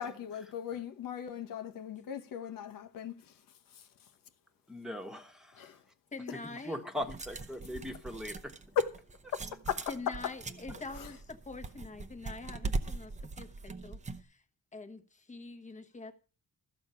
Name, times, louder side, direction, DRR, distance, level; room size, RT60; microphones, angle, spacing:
voice 1, 0.0-3.4 3.7-4.1 5.6-5.8 8.8-8.9 9.3-10.1 10.7-11.1, left 8 dB, 80° left, 1.1 m, -37 dB
voice 2, 4.7-5.8 6.3-8.8, left 1 dB, ahead, 1.3 m, -41 dB
voice 3, 6.1-6.8 9.9-13.1 13.4-14.4 14.7-16.1, left 3 dB, 20° left, 1.2 m, -45 dB
sound 1, 7.0-14.2, right 3 dB, 20° right, 0.7 m, -41 dB
13.5 x 7.1 x 5.6 m
cardioid pair, 135°, 33 cm